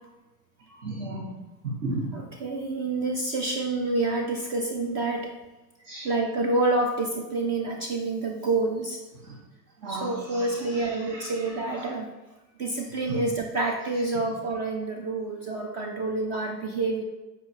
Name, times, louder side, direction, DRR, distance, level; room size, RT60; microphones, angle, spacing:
voice 1, 0.7-1.3 1.6-2.1 5.8-6.0 9.2-9.3 9.8-11.9 13.1-13.2, right 2 dB, 60° right, -5 dB, 1.8 m, -35 dB
voice 2, 2.1-5.3 6.0-9.0 9.9-12.1 12.6-17.0, right 2 dB, 30° right, 2 dB, 0.7 m, -28 dB
7.7 x 4.9 x 2.9 m, 1.1 s
hypercardioid pair, 100°, 50 cm